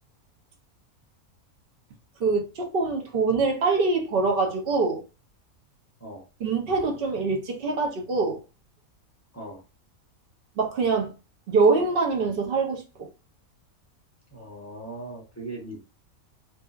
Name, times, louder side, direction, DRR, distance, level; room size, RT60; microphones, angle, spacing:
voice 1, 2.2-5.0 6.4-8.4 10.6-11.1 11.5-13.1, right 4 dB, 50° right, 0.7 m, -24 dB
voice 2, 14.3-15.8, right 2 dB, 15° left, 0.6 m, -39 dB
2.7 x 2.5 x 2.4 m
omnidirectional pair, 1.5 m